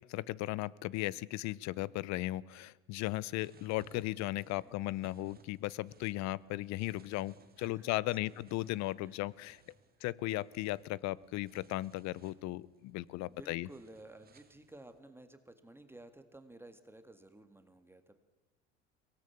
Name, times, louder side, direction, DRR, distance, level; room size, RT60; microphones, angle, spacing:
voice 1, 0.1-9.6 10.0-13.7, left 17 dB, 55° left, 23 dB, 0.7 m, -36 dB
sound 1, 3.1-15.0, right 5 dB, 30° right, 2.1 m, -64 dB
voice 2, 7.6-8.7 9.0-9.3 10.0-10.1 13.3-18.2, right 2 dB, 5° right, 9 dB, 1.9 m, -55 dB
23.0 x 18.0 x 8.5 m, 1.2 s
hypercardioid pair, 85°, 32 cm